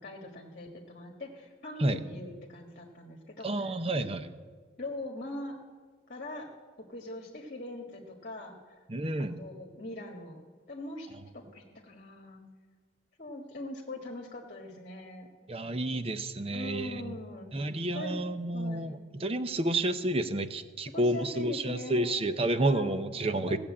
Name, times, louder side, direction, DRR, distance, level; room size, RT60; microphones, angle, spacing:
voice 1, 0.0-4.1 4.8-5.6 6.1-6.5 6.8-8.8 9.2-10.4 10.7-12.4 13.2-15.3 16.5-17.5 17.9-18.2 18.5-19.0 20.9-22.1 22.7-23.0 23.4-23.6, left 1 dB, 50° left, 0 dB, 1.6 m, -42 dB
voice 2, 3.4-4.2 8.9-9.4 15.5-17.1 17.5-23.6, right 1 dB, 30° right, 10 dB, 0.7 m, -30 dB
17.0 x 7.0 x 8.7 m, 1.6 s
head